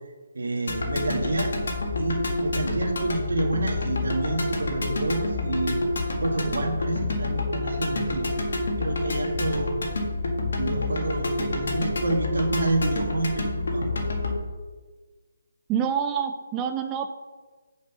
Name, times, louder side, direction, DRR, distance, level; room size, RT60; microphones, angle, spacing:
voice 1, 0.3-1.5 2.0-5.8 6.2-8.5 8.8-9.8 10.6-14.3, right 2 dB, 75° right, 3 dB, 1.6 m, -29 dB
sound 1, 0.7-14.4, left 2 dB, 75° left, 1.7 m, -28 dB
voice 2, 15.7-17.1, right 8 dB, 20° right, 6 dB, 0.4 m, -26 dB
6.3 x 5.3 x 5.9 m, 1.4 s
hypercardioid pair, 155°, 0 cm